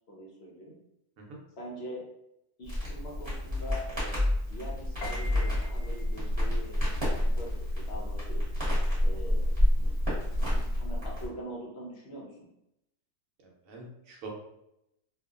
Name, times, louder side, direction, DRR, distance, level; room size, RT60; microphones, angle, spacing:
voice 1, 0.1-0.7 1.6-2.0 2.6-8.4 9.0-9.5 9.8-10.0 10.3-12.5, equal, 55° left, -2 dB, 0.8 m, -43 dB
Crackle, 2.6-11.3, left 1 dB, 20° right, 1.0 m, -29 dB
Piano, 5.0-10.8, left 1 dB, 85° left, 1.2 m, -49 dB
voice 2, 13.4-14.3, right 3 dB, 65° right, -1 dB, 1.0 m, -45 dB
2.8 x 2.4 x 2.3 m, 0.82 s
omnidirectional pair, 1.6 m